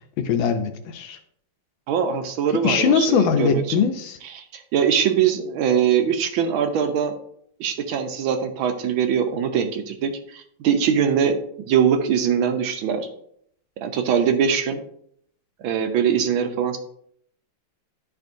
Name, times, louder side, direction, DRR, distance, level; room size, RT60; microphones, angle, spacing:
voice 1, 0.2-1.2 2.6-4.2, left 6 dB, 75° left, 7 dB, 1.3 m, -21 dB
voice 2, 1.9-3.6 4.2-7.2 7.6-13.1 13.8-14.8 15.6-16.8, right 8 dB, 75° right, 6 dB, 1.5 m, -22 dB
11.0 x 4.4 x 2.6 m, 0.67 s
omnidirectional pair, 2.4 m